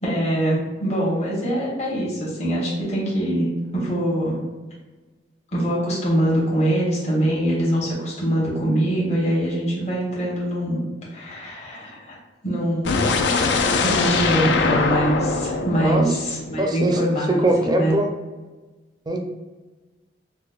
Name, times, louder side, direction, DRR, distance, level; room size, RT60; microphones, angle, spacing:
voice 1, 0.0-4.4 5.5-10.8 11.1-12.2 12.4-13.2 13.8-18.0, right 1 dB, 40° left, -6 dB, 1.0 m, -23 dB
sound 1, 12.8-16.8, left 4 dB, 85° left, 0.4 m, -22 dB
voice 2, 16.6-17.0 17.3-18.1 19.1-19.2, right 1 dB, 25° right, 2 dB, 0.4 m, -21 dB
4.8 x 2.1 x 2.4 m, 1.2 s
head